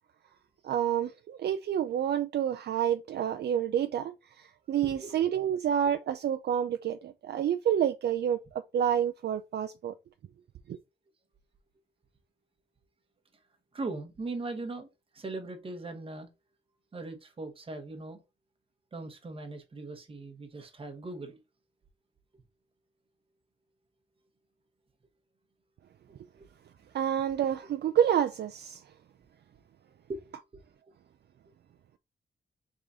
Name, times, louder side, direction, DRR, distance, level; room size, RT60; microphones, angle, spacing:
voice 1, 0.6-9.9 10.7-10.8 26.9-28.8, right 9 dB, 60° right, 0.4 m, -29 dB
voice 2, 13.7-14.9 15.1-16.3 16.9-18.2 18.9-21.4 30.1-30.2, right 2 dB, 30° right, 1.0 m, -39 dB
4.8 x 3.7 x 2.6 m
wide cardioid pair, 180°, 19 cm